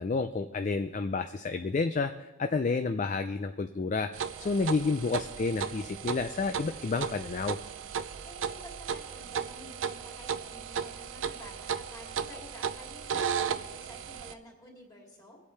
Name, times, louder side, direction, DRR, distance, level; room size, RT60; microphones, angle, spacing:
voice 1, 0.0-4.1 4.4-7.6, left 4 dB, 40° left, 8 dB, 0.4 m, -30 dB
sound 1, 4.1-14.3, right 7 dB, 85° right, 0.5 m, -35 dB
voice 2, 4.4-5.1 8.2-15.4, left 1 dB, 20° left, -2 dB, 3.0 m, -51 dB
22.5 x 8.4 x 3.3 m, 1.2 s
head